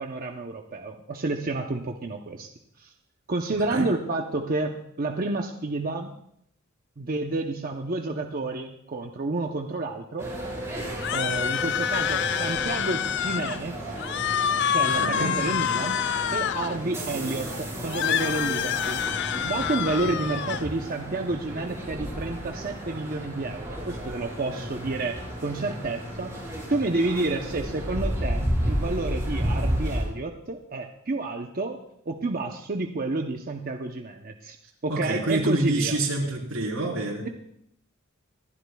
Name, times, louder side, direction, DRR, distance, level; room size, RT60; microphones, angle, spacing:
voice 1, 0.0-2.5 2.8-2.9 3.3-6.1 7.0-10.3 11.1-13.8 14.7-16.0 16.3-26.4 26.7-31.8 32.1-34.6 34.8-36.0 37.2-37.3, right 2 dB, 45° right, 3 dB, 0.7 m, -30 dB
sound 1, 10.2-30.0, equal, 15° right, 4.8 m, -32 dB
sound 2, 11.0-13.6 14.0-16.8 17.9-20.6, left 9 dB, 55° left, 0.4 m, -27 dB
voice 2, 14.8-15.4 34.9-37.3, right 2 dB, 85° right, -1 dB, 3.6 m, -27 dB
25.5 x 11.5 x 2.3 m, 0.72 s
head